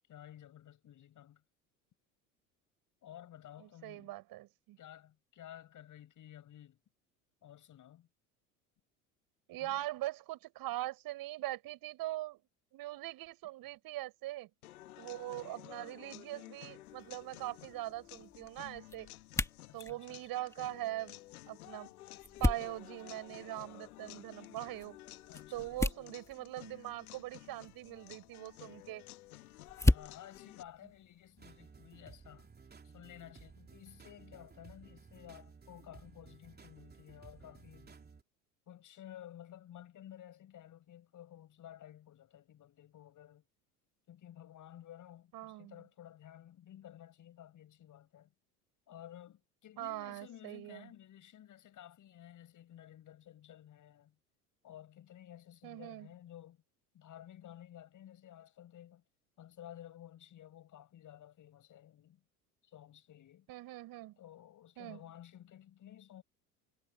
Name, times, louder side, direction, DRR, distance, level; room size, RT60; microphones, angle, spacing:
voice 1, 0.1-1.4 3.0-4.1 4.8-6.8 7.4-8.1 9.6-9.8 19.7-20.3 25.3-26.2 29.8-32.5 32.8-38.0 38.7-43.4 44.1-48.3 48.9-54.2 54.6-56.6 56.9-59.0 59.4-62.2 62.6-63.5 64.2-66.2, left 11 dB, 45° left, 7.8 m, -54 dB
voice 2, 3.6-4.8 9.5-12.4 12.7-14.5 15.0-19.1 19.7-21.2 21.5-21.9 22.4-25.0 25.5-29.0 45.3-45.8 49.8-50.9 55.6-56.1 63.5-64.2 64.8-65.0, right 16 dB, 55° right, 6.4 m, -42 dB
sound 1, 14.6-30.6, left 16 dB, 75° left, 2.0 m, -53 dB
sound 2, 16.8-31.7, left 1 dB, 5° left, 2.5 m, -38 dB
sound 3, 31.4-38.2, right 5 dB, 20° right, 3.3 m, -57 dB
hypercardioid pair, 75°, 44 cm